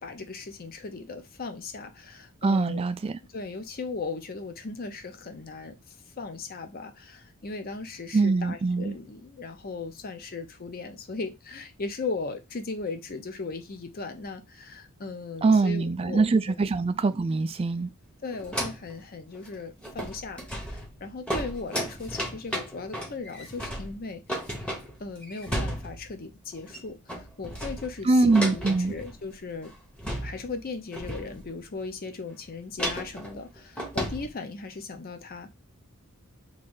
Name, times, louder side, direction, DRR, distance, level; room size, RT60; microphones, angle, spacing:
voice 1, 0.0-2.9 3.3-5.7 6.2-16.2 18.2-24.2 24.6-24.7 25.0-29.7 30.2-35.5, left 4 dB, 45° left, 0.6 m, -37 dB
voice 2, 2.4-3.2 8.1-8.9 15.4-17.9 28.1-28.9, right 3 dB, 25° right, 0.3 m, -23 dB
sound 1, 18.3-19.0 19.3-19.5 19.8-26.2 26.5-26.8 27.1-29.3 29.7-29.8 30.0-30.6 30.9-31.6 32.8-34.3, equal, 5° left, 0.8 m, -34 dB
3.1 x 2.6 x 3.8 m
head